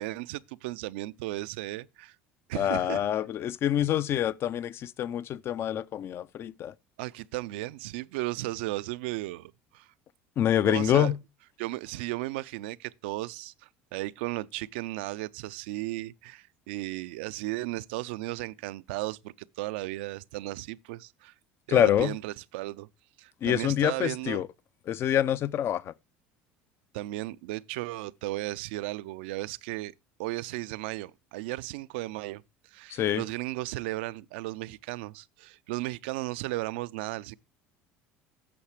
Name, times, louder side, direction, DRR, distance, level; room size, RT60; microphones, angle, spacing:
voice 1, 0.0-2.2 2.5-3.0 7.0-9.9 10.6-11.1 11.6-21.3 21.7-22.9 23.2-24.4 26.9-29.9 30.2-32.4 32.7-37.4, right 18 dB, 85° right, 0.4 m, -35 dB
voice 2, 2.5-6.7 10.4-11.2 21.7-22.2 23.4-24.5 24.9-25.9 32.9-33.2, left 11 dB, 45° left, 0.5 m, -26 dB
8.6 x 6.5 x 4.8 m
supercardioid pair, 100°, 6 cm